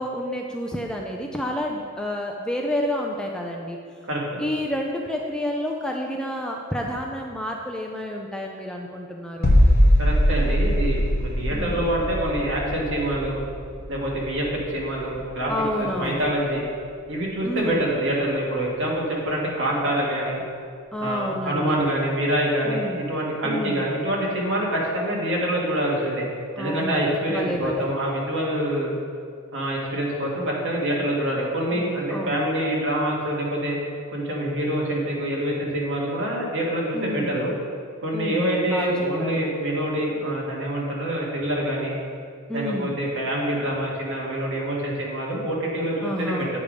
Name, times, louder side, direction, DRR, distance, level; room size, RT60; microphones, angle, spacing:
voice 1, 0.0-3.8 4.4-9.6 11.5-11.8 15.5-16.2 17.4-17.9 20.9-21.8 22.7-23.0 23.4-23.9 26.6-27.8 31.7-32.4 36.9-37.3 38.1-38.9 39.2-39.4 42.5-43.0 46.0-46.5, left 1 dB, 5° left, 0 dB, 0.4 m, -29 dB
voice 2, 4.1-4.4 10.0-13.4 13.9-15.5 15.8-16.7 17.1-20.4 21.0-26.2 26.6-28.9 29.5-33.8 34.1-37.5 38.0-42.0 42.5-46.5, right 1 dB, 55° right, -4 dB, 1.7 m, -26 dB
sound 1, 9.4-15.1 15.4-15.6, equal, 45° left, 1.0 m, -21 dB
8.4 x 4.9 x 5.1 m, 2.3 s
head